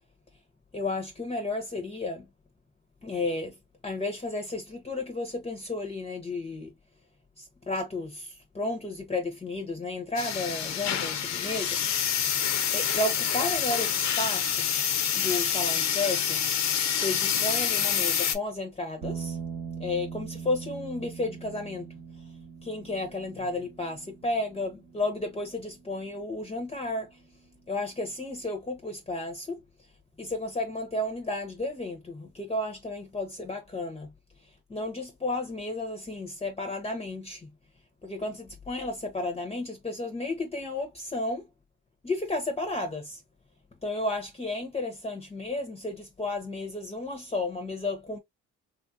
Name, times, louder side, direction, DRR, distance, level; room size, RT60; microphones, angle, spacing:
voice 1, 0.7-2.3 3.0-3.6 3.8-6.7 7.4-12.2 12.7-14.7 15.1-16.5 16.9-19.4 19.8-22.3 22.6-27.2 27.7-29.9 30.2-34.1 34.4-37.5 38.0-41.5 42.0-43.2 43.8-48.2, left 2 dB, 20° left, 0.7 m, -33 dB
sound 1, 10.2-18.4, left 8 dB, 65° left, 0.7 m, -27 dB
sound 2, 19.0-27.4, right 6 dB, 65° right, 0.9 m, -42 dB
3.2 x 2.4 x 2.5 m
cardioid pair, 90°, 30 cm